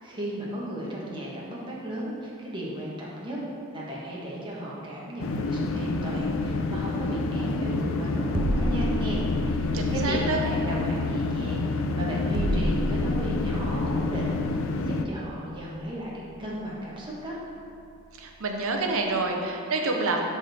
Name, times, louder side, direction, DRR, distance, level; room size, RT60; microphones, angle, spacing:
voice 1, 0.0-3.4 3.7-14.4 14.8-17.4, right 1 dB, 20° right, -6 dB, 1.5 m, -35 dB
sound 1, 5.2-15.0, left 3 dB, 65° left, 0.5 m, -28 dB
sound 2, 8.1-19.3, right 1 dB, 90° right, 0.6 m, -35 dB
voice 2, 9.7-10.4 18.2-20.2, right 3 dB, 70° right, 2 dB, 0.9 m, -27 dB
12.5 x 4.3 x 3.6 m, 2.5 s
head